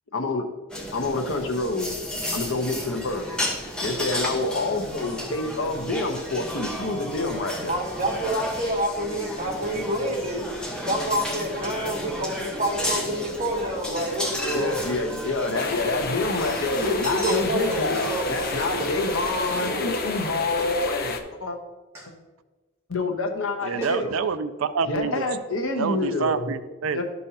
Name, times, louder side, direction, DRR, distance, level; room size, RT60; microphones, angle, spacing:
voice 1, 0.1-0.5 0.9-2.0 2.3-3.3 3.8-7.8 14.5-21.6 22.9-24.1 24.9-26.4 26.9-27.0, left 2 dB, 85° left, 4 dB, 1.0 m, -27 dB
sound 1, 0.7-19.7, equal, 5° left, 1.0 m, -33 dB
voice 2, 7.7-10.4 10.9-14.8 16.8-19.1 19.6-19.9, equal, 40° right, -1 dB, 1.5 m, -28 dB
sound 2, 15.5-21.2, left 3 dB, 50° left, 0.7 m, -31 dB
Clapping, 20.6-20.8 21.9-22.1 23.4-23.5 23.8-24.1 25.1-25.3, right 2 dB, 15° right, 1.9 m, -37 dB
voice 3, 23.6-25.2 25.7-27.0, right 6 dB, 85° right, 13 dB, 0.4 m, -27 dB
12.0 x 5.4 x 2.9 m, 1.2 s
head